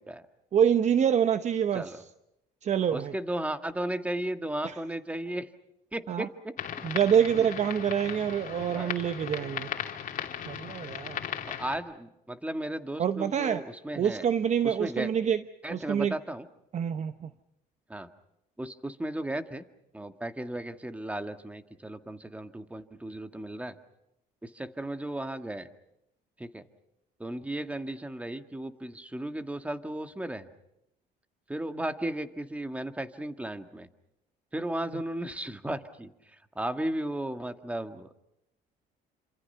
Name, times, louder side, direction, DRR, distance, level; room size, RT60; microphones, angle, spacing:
voice 1, 0.5-1.9 2.6-3.1 4.6-4.7 6.1-6.3 6.8-9.7 10.5-11.2 13.0-13.6 14.0-15.4 15.7-16.1 16.7-17.3 34.9-35.0, right 8 dB, 45° right, 0.9 m, -26 dB
voice 2, 2.9-5.5 5.9-6.5 8.7-8.9 11.5-14.2 14.6-15.1 15.6-16.5 17.9-18.1 18.6-19.7 19.9-23.8 24.4-25.7 26.4-26.6 27.2-30.5 31.5-33.9 34.5-36.1 36.6-38.1, right 1 dB, 10° right, 1.8 m, -35 dB
sound 1, 6.6-11.8, left 9 dB, 50° left, 2.9 m, -37 dB
28.5 x 26.5 x 5.6 m
cardioid pair, 110°, 17 cm